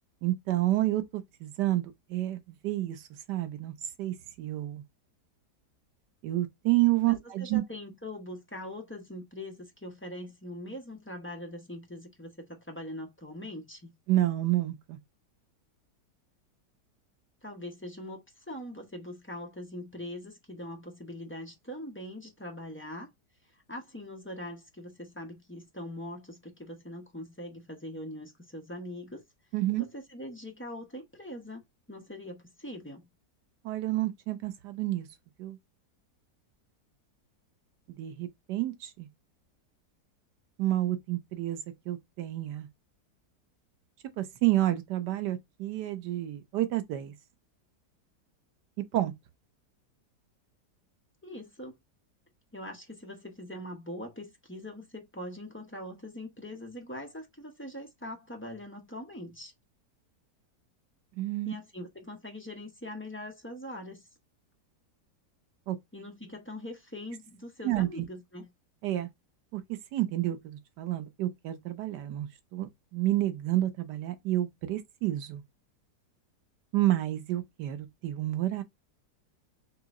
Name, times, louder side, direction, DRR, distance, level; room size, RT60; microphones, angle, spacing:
voice 1, 0.2-3.0 3.3-4.8 6.2-7.6 14.1-15.0 29.5-29.9 33.6-35.1 35.4-35.6 38.0-39.1 40.6-41.6 41.9-42.7 44.2-47.1 48.9-49.1 61.2-61.5 65.7-65.8 67.6-67.9 68.8-69.1 69.5-75.4 76.7-78.6, right 15 dB, 80° right, 1.4 m, -29 dB
voice 2, 7.0-13.9 17.4-23.1 23.4-29.2 29.8-31.6 31.9-33.1 51.2-51.8 52.5-59.5 61.4-64.0 65.9-68.4, left 1 dB, 15° left, 0.4 m, -42 dB
3.8 x 3.0 x 3.6 m
omnidirectional pair, 1.8 m